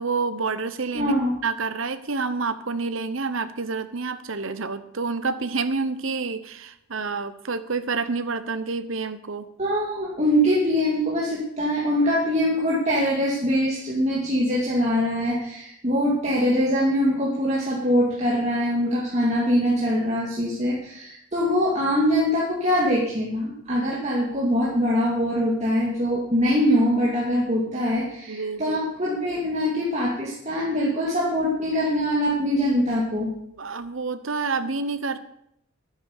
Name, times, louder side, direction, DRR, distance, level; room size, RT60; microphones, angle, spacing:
voice 1, 0.0-1.1 1.4-9.5 28.3-28.8 33.6-35.2, right 4 dB, 70° right, 12 dB, 1.0 m, -28 dB
voice 2, 0.9-1.3 9.6-33.3, equal, 30° right, -5 dB, 2.4 m, -23 dB
12.0 x 9.6 x 6.7 m, 0.75 s
head